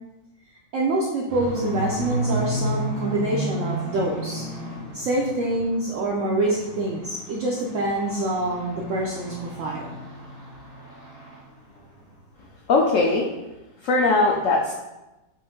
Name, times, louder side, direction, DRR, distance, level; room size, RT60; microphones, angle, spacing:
voice 1, 0.7-4.4 4.9-9.9, right 1 dB, 80° right, -3 dB, 0.7 m, -26 dB
sound 1, 1.3-5.8 6.2-11.4 11.7-12.0 12.4-12.5 12.8-12.9, right 1 dB, 25° left, 1.2 m, -32 dB
voice 2, 12.7-13.3 13.8-14.7, left 3 dB, 85° left, -2 dB, 0.7 m, -20 dB
4.6 x 2.6 x 3.6 m, 1.0 s
omnidirectional pair, 1.9 m